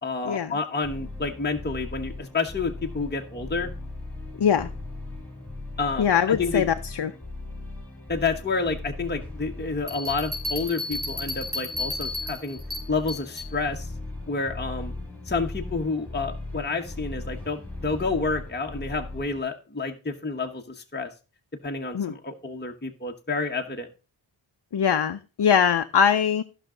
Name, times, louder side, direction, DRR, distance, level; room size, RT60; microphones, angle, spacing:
voice 1, 0.0-3.7 5.8-6.6 8.1-12.6 12.9-13.9 14.3-14.9 15.2-21.1 21.6-23.9, left 4 dB, 20° left, 3 dB, 1.1 m, -29 dB
sound 1, 0.8-19.4, left 2 dB, 5° left, 4.6 m, -38 dB
voice 2, 4.4-4.7 6.0-7.1 21.9-22.1 24.7-26.4, left 7 dB, 55° left, 8 dB, 0.6 m, -22 dB
sound 2, 9.9-13.5, left 2 dB, 20° right, 4.9 m, -33 dB
14.0 x 5.9 x 3.8 m, 0.33 s
wide cardioid pair, 60°, 48 cm